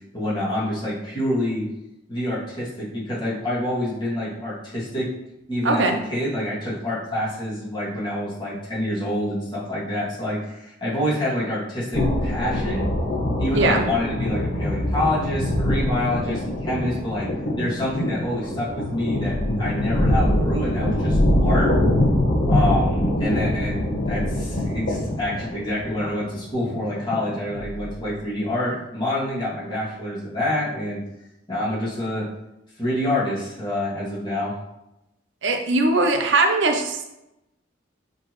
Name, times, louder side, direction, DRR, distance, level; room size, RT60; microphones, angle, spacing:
voice 1, 0.1-1.6 2.1-5.1 5.5-12.9 13.4-17.3 17.6-21.7 22.4-31.0 31.5-32.3 32.8-34.6, left 1 dB, 25° left, -8 dB, 2.4 m, -27 dB
voice 2, 5.6-6.0 13.5-13.8 35.4-37.1, right 2 dB, 70° right, 4 dB, 0.7 m, -20 dB
sound 1, 11.9-28.1, left 1 dB, 60° left, 1.4 m, -23 dB
7.9 x 4.1 x 3.1 m, 0.90 s
head